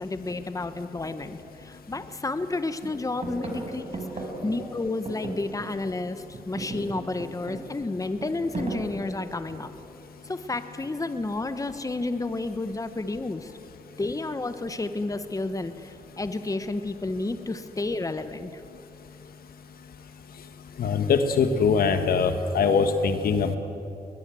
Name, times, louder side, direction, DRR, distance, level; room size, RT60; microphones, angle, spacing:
voice 1, 0.0-9.7 10.2-13.5 14.0-18.6, left 2 dB, 20° left, 10 dB, 1.3 m, -31 dB
sound 1, 1.4-1.5 1.9-2.5 2.8-6.0 6.2-9.9 10.8-11.3, right 2 dB, 45° right, 5.8 m, -37 dB
voice 2, 20.8-23.6, left 5 dB, 75° left, 8 dB, 1.7 m, -22 dB
21.5 x 20.5 x 7.8 m, 2.9 s
cardioid pair, 60°, 16 cm